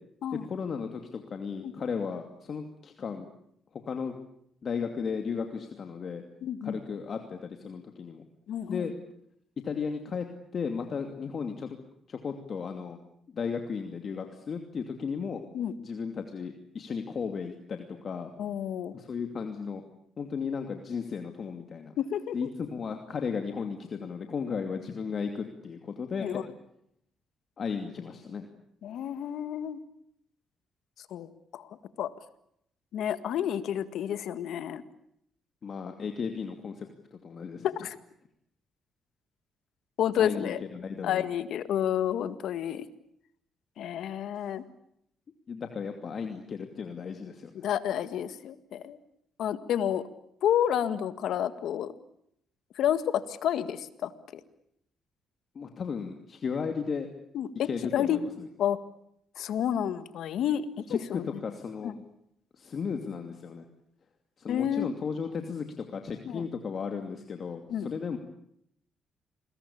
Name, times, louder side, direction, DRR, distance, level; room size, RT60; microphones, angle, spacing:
voice 1, 0.3-3.3 3.7-4.2 4.6-6.2 6.6-8.2 8.7-8.9 9.6-10.3 10.5-11.8 12.1-13.0 13.3-15.4 15.8-18.3 18.9-19.8 20.2-21.9 22.3-26.4 27.6-28.5 35.6-37.7 40.2-41.2 45.5-47.5 55.5-57.1 57.6-58.3 60.9-62.0 62.6-63.7 64.4-68.2, left 6 dB, 50° left, 5 dB, 2.6 m, -35 dB
voice 2, 6.4-6.8 8.5-8.9 15.5-15.7 18.4-19.0 22.0-22.5 26.2-26.4 28.8-29.8 31.1-32.1 32.9-34.8 37.6-38.0 40.0-40.6 41.0-42.9 43.8-44.6 47.6-49.0 49.4-50.0 50.4-51.9 52.8-54.4 57.3-58.2 58.6-58.8 59.4-61.3 61.8-61.9 64.5-64.9 66.3-66.4 67.7-67.9, left 10 dB, 75° left, 12 dB, 1.8 m, -30 dB
29.0 x 21.5 x 8.7 m, 0.72 s
cardioid pair, 90°, 0 cm